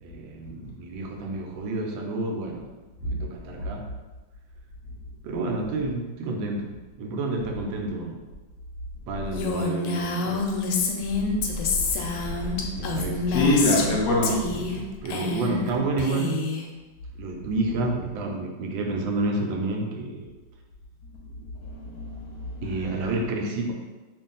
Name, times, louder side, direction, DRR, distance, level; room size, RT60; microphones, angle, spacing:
voice 1, 0.0-2.7 3.0-3.9 5.2-8.2 9.1-10.5 12.8-13.4 14.5-16.5 17.2-20.3 22.6-23.7, right 2 dB, 80° right, 2 dB, 1.3 m, -30 dB
Female speech woman speaking, 9.3-13.9 14.2-14.8 15.0-15.7 16.0-16.6, left 4 dB, 90° left, 1.4 m, -28 dB
voice 2, 12.2-12.6 13.3-14.4 21.9-22.6, left 1 dB, 60° left, -3 dB, 1.0 m, -24 dB
3.1 x 2.6 x 3.8 m, 1.2 s
omnidirectional pair, 2.2 m